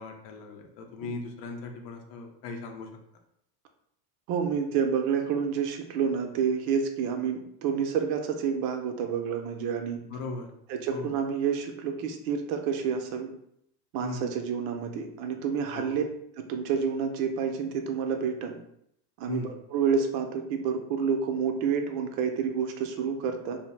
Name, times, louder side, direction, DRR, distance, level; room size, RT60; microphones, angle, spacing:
voice 1, 0.0-2.9 10.1-10.5 10.9-11.1 14.0-14.3 15.7-16.0 19.2-19.5, left 3 dB, 55° left, 4 dB, 0.6 m, -38 dB
voice 2, 4.3-10.0 10.7-13.3 13.9-16.0 16.4-18.6 19.2-23.6, right 6 dB, 60° right, 5 dB, 0.5 m, -29 dB
2.7 x 2.0 x 3.1 m, 0.73 s
supercardioid pair, 130°, 48 cm